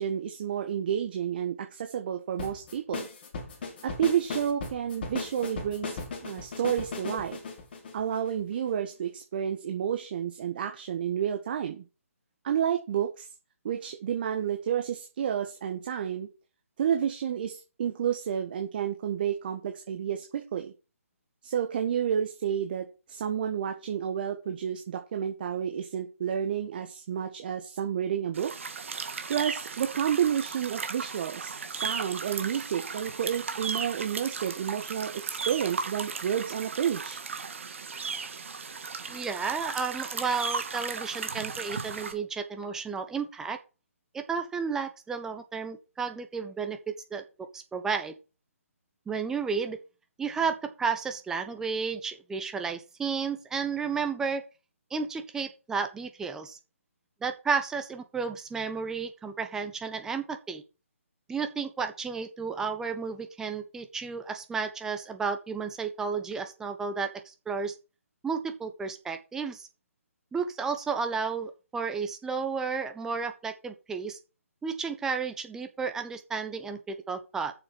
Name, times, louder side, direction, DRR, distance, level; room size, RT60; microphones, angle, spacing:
voice 1, 0.0-3.1 3.8-7.4 7.9-11.8 12.4-13.3 13.6-16.3 16.8-20.7 21.4-28.5 29.3-37.2, right 9 dB, 40° right, 5 dB, 1.5 m, -30 dB
sound 1, 2.4-8.7, left 4 dB, 40° left, 2.7 m, -37 dB
sound 2, 28.3-42.1, right 5 dB, 55° right, 2.0 m, -36 dB
voice 2, 39.1-43.6 44.1-47.2 47.5-48.2 49.1-49.8 50.2-54.4 54.9-56.6 57.2-60.6 61.3-67.7 68.2-69.7 70.3-74.2 74.6-77.5, right 5 dB, 5° right, 7 dB, 0.9 m, -32 dB
7.5 x 6.9 x 7.2 m, 0.31 s
figure-of-eight pair, 145°, 8 cm